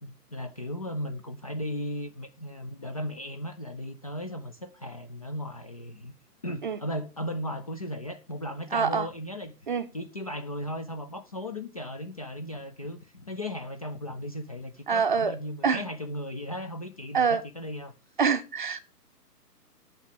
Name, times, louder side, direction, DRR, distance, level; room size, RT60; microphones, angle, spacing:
voice 1, 0.0-6.1 6.4-9.5 9.9-17.9, left 1 dB, 25° left, 0.5 m, -36 dB
voice 2, 8.7-9.1 9.7-9.8 14.9-15.4 15.6-15.8 17.1-17.4 18.2-18.8, right 6 dB, 30° right, 0.7 m, -25 dB
8.9 x 5.7 x 8.0 m
figure-of-eight pair, 135°, 48 cm